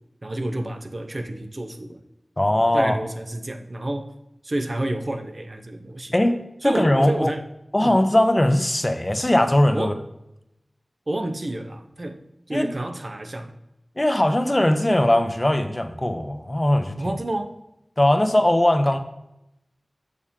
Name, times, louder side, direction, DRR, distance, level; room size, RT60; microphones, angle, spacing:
voice 1, 0.2-2.0 2.7-4.1 4.4-6.1 6.6-7.4 7.8-8.0 9.7-10.0 11.1-12.2 12.5-13.5 17.0-17.5, right 1 dB, 50° right, 7 dB, 0.8 m, -29 dB
voice 2, 2.4-2.9 6.1-7.3 7.7-9.9 12.5-12.7 14.0-17.0 18.0-19.0, left 1 dB, 25° left, 8 dB, 0.8 m, -20 dB
7.0 x 6.6 x 3.6 m, 0.87 s
wide cardioid pair, 65°, 0 cm